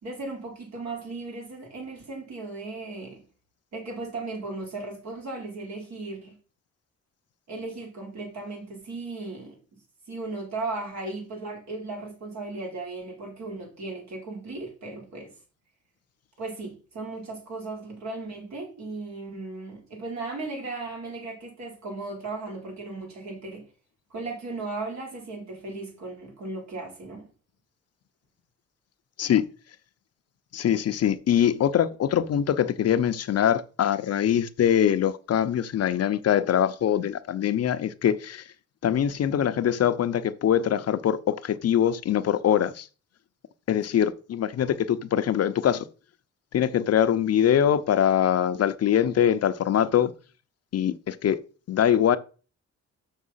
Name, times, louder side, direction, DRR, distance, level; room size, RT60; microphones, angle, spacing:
voice 1, 0.0-3.2 3.7-6.3 7.5-9.6 10.1-15.3 16.4-23.6 24.1-27.3, right 3 dB, 65° right, 4.5 m, -36 dB
voice 2, 30.5-38.4 38.8-42.9 43.7-45.9 46.5-50.1 50.7-51.4 51.7-52.2, left 9 dB, 55° left, 0.7 m, -23 dB
6.7 x 6.3 x 5.6 m
cardioid pair, 90°, 30 cm